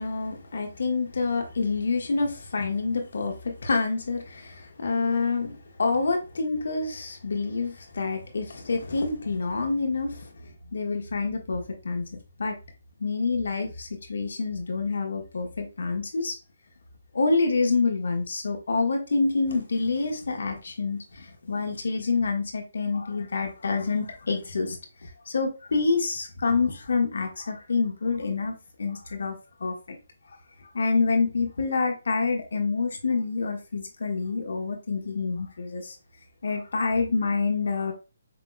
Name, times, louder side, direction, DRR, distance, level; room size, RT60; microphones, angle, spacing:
voice 1, 0.0-12.6 13.0-16.3 17.1-30.0 30.7-36.0 36.4-37.9, left 4 dB, 70° left, 1.3 m, -27 dB
6.0 x 3.7 x 2.2 m
figure-of-eight pair, 150°, 0 cm